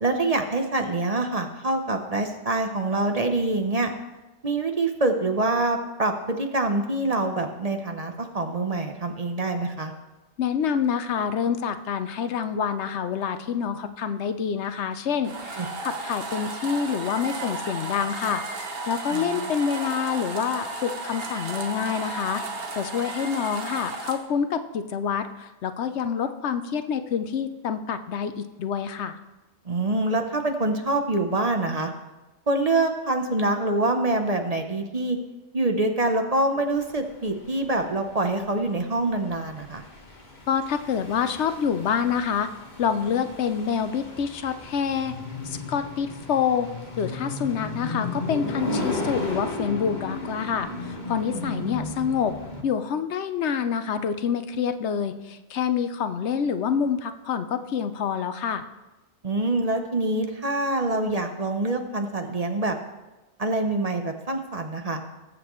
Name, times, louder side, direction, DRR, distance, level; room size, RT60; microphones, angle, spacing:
voice 1, 0.0-3.9 4.4-9.9 15.6-15.7 19.1-19.5 29.6-31.9 32.5-35.2 35.5-39.8 48.7-48.9 51.3-51.8 59.2-62.8 63.4-65.0, right 2 dB, 35° right, 5 dB, 0.8 m, -25 dB
voice 2, 10.4-22.4 22.8-29.2 40.5-42.5 42.8-45.2 45.4-46.7 47.0-52.4 52.6-58.6, left 7 dB, 75° left, 10 dB, 1.0 m, -27 dB
sound 1, 15.2-24.2, right 3 dB, 55° right, 1.3 m, -34 dB
sound 2, 36.8-52.6, left 2 dB, 40° left, 1.6 m, -35 dB
20.0 x 7.6 x 3.1 m, 1.1 s
omnidirectional pair, 1.2 m